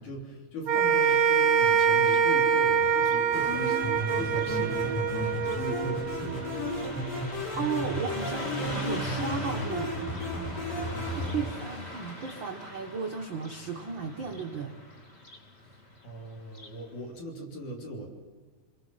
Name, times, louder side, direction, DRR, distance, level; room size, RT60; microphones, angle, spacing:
voice 1, 0.0-7.2 10.7-11.5 15.6-18.1, right 1 dB, 60° left, 0 dB, 5.1 m, -40 dB
sound 1, 0.6-7.1, right 6 dB, 45° right, 1.6 m, -25 dB
Car passing by, 0.8-16.8, equal, 30° left, 1.3 m, -42 dB
sound 2, 3.3-11.3, left 1 dB, 80° left, 8.2 m, -34 dB
voice 2, 7.6-10.0 11.1-14.8, right 6 dB, 65° right, 3 dB, 1.2 m, -34 dB
28.0 x 22.0 x 5.6 m, 1.5 s
omnidirectional pair, 4.0 m